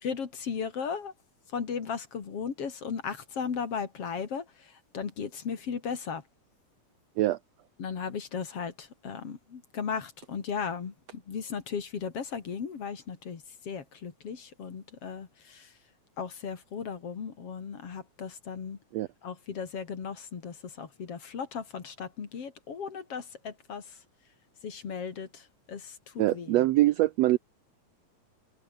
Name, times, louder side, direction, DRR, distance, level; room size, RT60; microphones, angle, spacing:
voice 1, 0.0-1.1 1.5-6.2 7.8-15.7 16.2-18.8 19.2-24.0 24.6-26.6, left 6 dB, 50° left, 3.3 m, -36 dB
voice 2, 26.2-27.4, right 16 dB, 80° right, 1.5 m, -23 dB
omnidirectional pair, 3.6 m